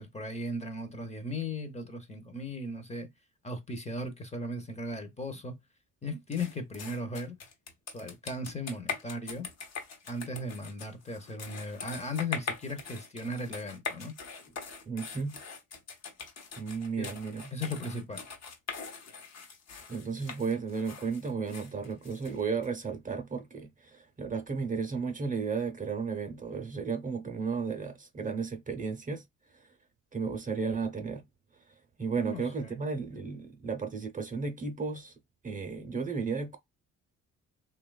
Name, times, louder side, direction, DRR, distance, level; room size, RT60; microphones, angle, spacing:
voice 1, 0.0-3.1 3.4-5.5 6.0-7.4 7.9-9.5 10.1-14.1 17.0-17.1 17.5-18.3 32.2-32.8, left 1 dB, 20° left, 0.7 m, -37 dB
sound 1, 6.3-22.7, left 5 dB, 60° left, 0.9 m, -42 dB
voice 2, 14.9-15.4 16.6-17.4 19.9-29.2 30.1-31.2 32.0-35.1 35.4-36.6, right 5 dB, 25° right, 0.7 m, -34 dB
2.9 x 2.3 x 2.2 m
cardioid pair, 90°, 30 cm